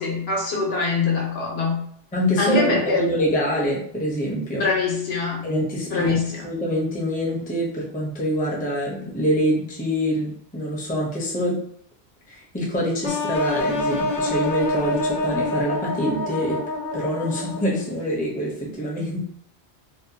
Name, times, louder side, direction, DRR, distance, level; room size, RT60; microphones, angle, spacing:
voice 1, 0.0-1.8 2.4-3.0 4.6-5.5 5.9-6.4, left 4 dB, 70° left, -2 dB, 1.0 m, -23 dB
voice 2, 2.1-4.6 5.4-11.6 12.3-16.6 16.9-19.3, equal, 10° left, -4 dB, 0.5 m, -25 dB
sound 1, 13.0-17.9, left 2 dB, 50° left, 0.7 m, -26 dB
2.6 x 2.1 x 2.7 m, 0.65 s
omnidirectional pair, 1.1 m